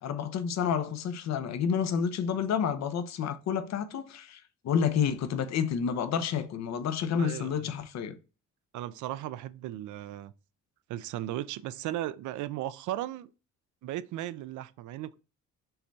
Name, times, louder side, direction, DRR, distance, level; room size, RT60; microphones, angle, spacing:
voice 1, 0.0-8.2, left 7 dB, 60° left, 0.7 m, -29 dB
voice 2, 7.2-7.7 8.7-10.3 10.9-13.3 13.8-15.2, right 13 dB, 80° right, 0.4 m, -36 dB
5.6 x 2.2 x 3.9 m
cardioid pair, 90°, 30 cm